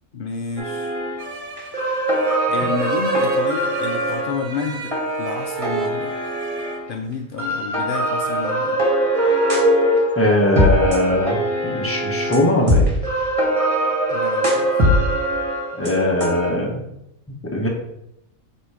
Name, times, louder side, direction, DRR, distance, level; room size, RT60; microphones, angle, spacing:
voice 1, 0.1-0.9 2.5-4.9 5.2-6.1 6.9-8.8 14.1-14.7, left 5 dB, 70° left, 3 dB, 0.5 m, -29 dB
sound 1, 0.6-1.3 1.6-6.9 7.4-16.5, right 1 dB, 25° right, 1.5 m, -21 dB
sound 2, 1.2-6.8, right 5 dB, 55° right, 0.5 m, -36 dB
voice 2, 10.2-11.4 11.6-12.9 15.7-16.8 17.4-17.7, left 1 dB, 10° left, -1 dB, 1.0 m, -20 dB
8.1 x 2.9 x 4.8 m, 0.81 s
omnidirectional pair, 1.5 m